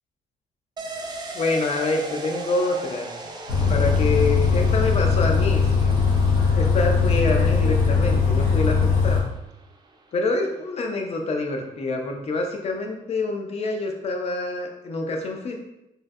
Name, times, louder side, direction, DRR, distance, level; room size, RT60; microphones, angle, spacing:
sound 1, 0.8-10.2 10.5-10.6, right 2 dB, 30° right, 0.3 m, -39 dB
voice 1, 1.3-3.1 3.7-6.0 6.5-8.8 9.0-9.3 10.1-15.5, left 3 dB, 50° left, 2 dB, 0.5 m, -26 dB
Bus, 3.5-9.2, left 5 dB, 85° left, 0.7 m, -20 dB
3.1 x 2.6 x 2.3 m, 0.87 s
cardioid pair, 130°, 14 cm